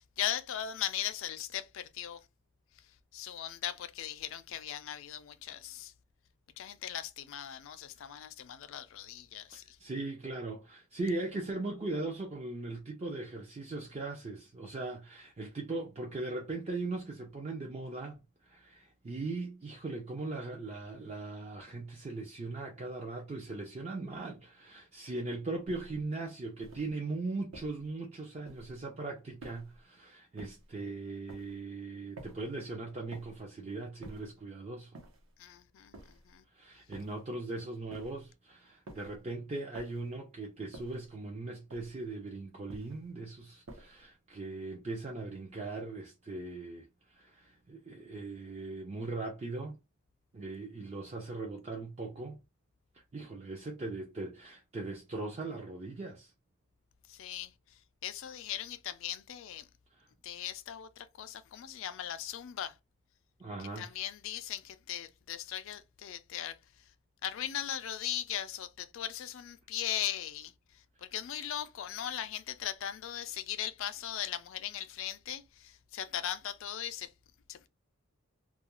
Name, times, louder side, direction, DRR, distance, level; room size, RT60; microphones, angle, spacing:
voice 1, 0.0-2.2 2.8-2.9 3.1-5.9 6.6-9.8 35.4-36.4 57.1-59.7 60.2-62.8 63.6-66.8 67.2-77.1 77.5-77.7, left 10 dB, 65° left, 0.3 m, -39 dB
voice 2, 9.5-35.0 36.5-49.8 50.3-52.4 53.1-56.3 59.9-60.1 63.4-63.9, right 3 dB, 30° right, 0.4 m, -39 dB
sound 1, 25.7-26.1 26.6-27.0 27.5-27.9 28.5-28.9 29.4-29.8 30.4-30.7 31.3-31.6 32.2-32.6 33.1-33.5 34.0-34.4 34.9-35.4 35.9-36.4 36.9-37.3 37.9-38.3 38.9-39.2 39.7-40.2 40.7-41.1 41.7-42.1 42.7-43.1 43.7-44.1, right 1 dB, 75° right, 0.8 m, -51 dB
2.3 x 2.2 x 2.9 m
head